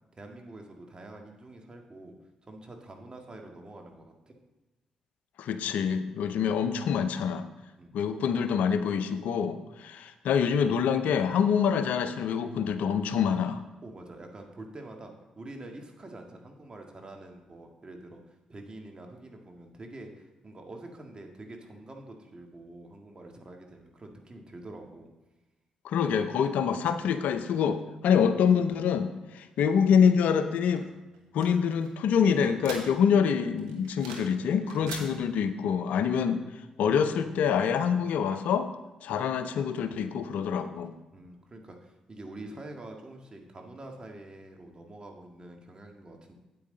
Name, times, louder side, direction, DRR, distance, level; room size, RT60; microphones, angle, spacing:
voice 1, 0.1-2.2 2.4-4.4 7.8-7.9 13.8-25.1 34.4-35.7 41.1-46.3, right 2 dB, 35° right, 2 dB, 1.8 m, -46 dB
voice 2, 5.4-7.5 7.9-13.6 25.8-30.9 31.3-38.7 39.0-40.9, left 7 dB, 70° left, 10 dB, 0.6 m, -26 dB
sound 1, 30.7-33.3 33.6-34.4 34.6-35.1, right 5 dB, 85° right, 1.1 m, -43 dB
8.5 x 8.5 x 3.9 m, 1.1 s
hypercardioid pair, 45°, 3 cm